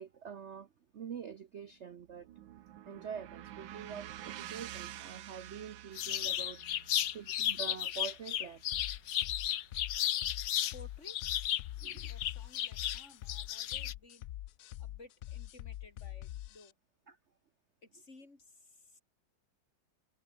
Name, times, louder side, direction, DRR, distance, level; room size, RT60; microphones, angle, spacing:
voice 1, 0.0-2.3 2.9-6.6 7.1-8.8 11.8-12.1 17.1-17.2, right 7 dB, 50° right, 0.9 m, -45 dB
sound 1, 1.6-9.9, right 12 dB, 80° right, 1.7 m, -50 dB
sound 2, 6.0-10.8 11.1-13.9, left 12 dB, 70° left, 1.5 m, -34 dB
sound 3, 8.7-16.7, left 14 dB, 90° left, 0.7 m, -45 dB
voice 2, 10.7-11.2 12.1-14.2 14.8-16.7 17.8-19.0, left 2 dB, 35° left, 3.9 m, -57 dB
omnidirectional pair, 2.0 m